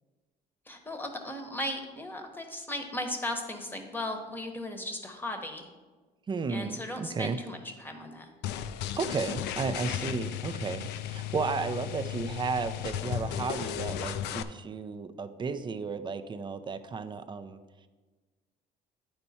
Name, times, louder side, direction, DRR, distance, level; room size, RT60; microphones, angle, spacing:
voice 1, 0.7-5.7 6.5-8.3, left 1 dB, 10° left, 4 dB, 1.0 m, -36 dB
voice 2, 6.3-7.4 9.0-17.6, right 4 dB, 30° right, 11 dB, 0.5 m, -33 dB
sound 1, 8.4-14.4, left 11 dB, 85° left, 0.4 m, -35 dB
9.7 x 4.5 x 4.2 m, 1.3 s
cardioid pair, 110°, 17 cm